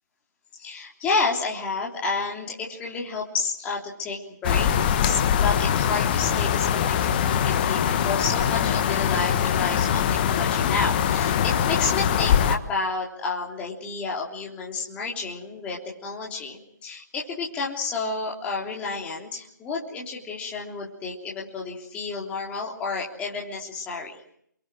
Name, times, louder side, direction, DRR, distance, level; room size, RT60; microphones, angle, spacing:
voice 1, 0.5-4.7 5.0-24.2, left 4 dB, 10° left, -3 dB, 3.4 m, -30 dB
sound 1, 4.4-12.6, left 8 dB, 25° left, 1.4 m, -22 dB
29.0 x 23.0 x 6.1 m, 0.69 s
figure-of-eight pair, 145°, 11 cm